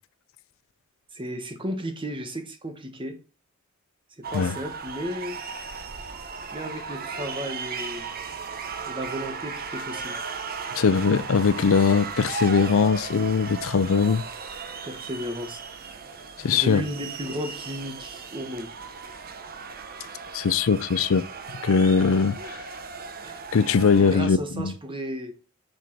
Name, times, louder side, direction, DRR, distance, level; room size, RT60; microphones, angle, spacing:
voice 1, 1.1-3.2 4.3-5.4 6.5-8.1 8.9-10.2 14.8-15.6 16.5-18.7 23.2-23.4 24.0-25.3, equal, 25° right, 1.2 m, -34 dB
sound 1, 4.2-24.2, right 5 dB, 45° right, 0.9 m, -36 dB
voice 2, 10.7-14.2 16.4-16.8 20.3-21.3 21.6-22.6 23.5-24.7, left 5 dB, 65° left, 0.5 m, -21 dB
6.6 x 6.3 x 4.5 m
head